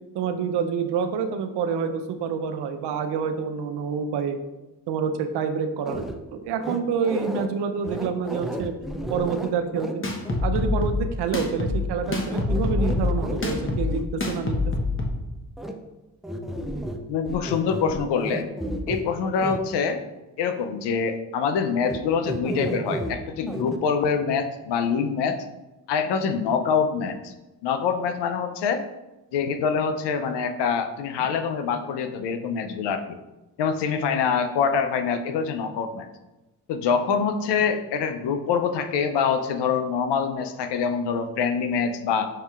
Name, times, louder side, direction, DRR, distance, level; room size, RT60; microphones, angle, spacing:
voice 1, 0.1-4.4 4.9-6.0 6.3-8.7 9.1-10.1 10.4-14.7, right 6 dB, 70° right, 8 dB, 0.6 m, -27 dB
sound 1, 5.8-6.2 6.6-7.5 7.8-9.9 10.2-10.4 12.0-14.0 15.6-15.7 16.2-17.0 17.2-19.0 19.3-19.6 21.8-22.0 22.2-23.1 23.5-23.8, right 1 dB, ahead, 0.3 m, -32 dB
sound 2, 10.0-15.1, left 3 dB, 30° left, 0.9 m, -26 dB
voice 2, 17.1-18.5 18.9-20.0 20.4-25.4 25.9-27.3 27.6-28.9 29.3-33.2 33.6-36.1 36.7-42.3, left 6 dB, 75° left, 8 dB, 0.5 m, -25 dB
6.3 x 2.8 x 2.4 m, 1.1 s
supercardioid pair, 50°, 42 cm